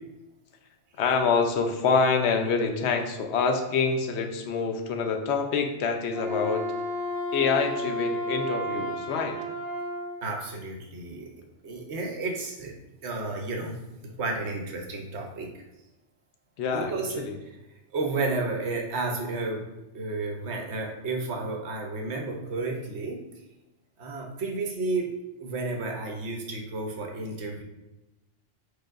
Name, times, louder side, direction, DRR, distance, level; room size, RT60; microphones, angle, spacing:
voice 1, 1.0-6.6 7.3-9.4 16.6-16.9 17.2-17.4, left 5 dB, 75° left, 5 dB, 0.9 m, -26 dB
Wind instrument woodwind instrument, 6.0-10.2, left 1 dB, 25° right, 1.2 m, -32 dB
voice 2, 10.2-11.3 11.6-12.7 13.0-13.8 14.0-15.6 16.7-17.2 17.9-19.6 19.9-23.2 24.0-25.1 25.4-27.6, right 3 dB, 70° right, 1 dB, 1.1 m, -32 dB
4.8 x 4.5 x 2.4 m, 1.0 s
omnidirectional pair, 1.2 m